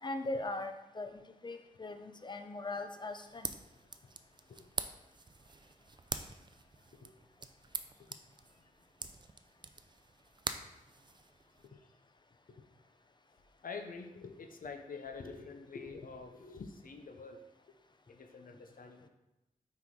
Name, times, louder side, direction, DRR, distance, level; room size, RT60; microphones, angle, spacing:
voice 1, 0.0-1.1 1.4-3.5, left 2 dB, 30° left, 7 dB, 0.5 m, -39 dB
sound 1, 3.1-11.7, right 4 dB, 30° right, 0.4 m, -45 dB
voice 2, 13.6-17.4 18.1-19.1, left 4 dB, 75° left, 5 dB, 0.7 m, -47 dB
6.0 x 4.6 x 3.7 m, 0.97 s
wide cardioid pair, 75°, 15 cm